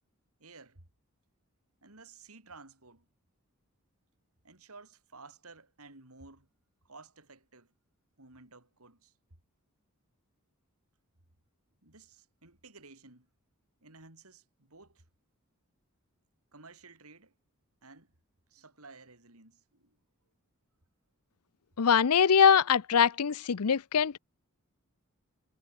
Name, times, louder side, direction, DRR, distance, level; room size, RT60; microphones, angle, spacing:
voice 1, 0.4-0.8 1.8-3.1 4.4-6.5 6.8-7.7 8.2-9.1 11.8-13.3 13.8-15.0 16.5-17.3 17.8-18.1 18.5-20.0, right 3 dB, 80° right, 4.5 m, -54 dB
voice 2, 21.8-24.2, left 7 dB, 90° left, 0.6 m, -23 dB
head